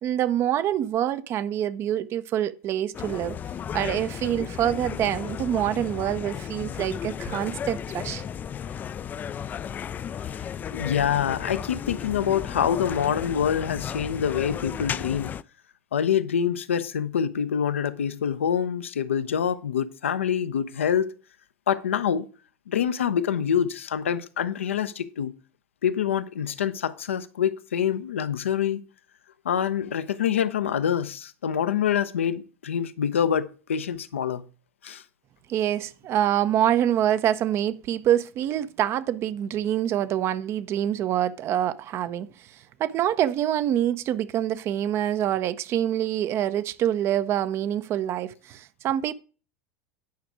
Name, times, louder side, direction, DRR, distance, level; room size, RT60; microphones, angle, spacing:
voice 1, 0.0-3.4 3.7-8.2 35.5-42.3 42.8-49.1, right 11 dB, 40° right, 0.6 m, -26 dB
sound 1, 2.9-15.4, left 8 dB, 25° left, 0.3 m, -34 dB
voice 2, 10.7-15.3 15.9-21.1 21.7-22.3 22.7-25.3 25.8-28.8 29.4-34.4 34.8-35.0, left 8 dB, 70° left, 0.7 m, -26 dB
9.4 x 5.9 x 4.9 m
figure-of-eight pair, 80°, 7 cm